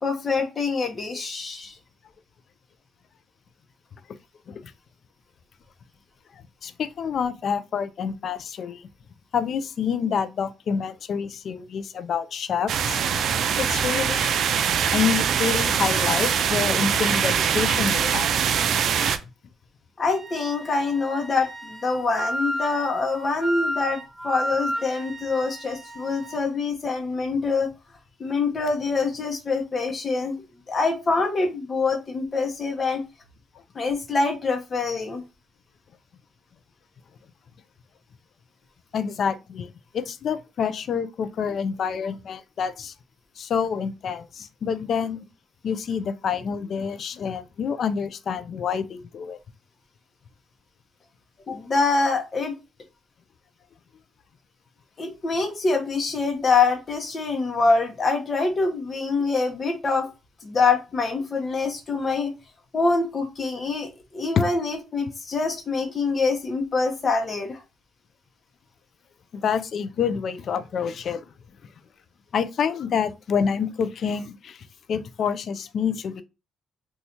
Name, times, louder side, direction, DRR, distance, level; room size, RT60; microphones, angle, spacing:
voice 1, 0.0-1.7 20.0-27.7 28.2-30.4 30.7-33.0 33.7-35.2 51.5-52.5 55.0-60.1 60.4-62.3 62.7-67.6, left 4 dB, 40° left, 0.7 m, -25 dB
voice 2, 6.3-8.9 9.3-13.0 13.6-14.4 14.9-18.3 38.9-42.9 43.4-45.2 45.6-49.4 64.4-64.5 69.3-71.2 72.3-76.2, left 7 dB, 60° left, 0.4 m, -27 dB
sound 1, 12.7-19.2, right 7 dB, 70° right, 0.4 m, -23 dB
Wind instrument woodwind instrument, 20.1-26.4, equal, 15° right, 0.6 m, -33 dB
2.8 x 2.3 x 4.2 m
cardioid pair, 90°, 0 cm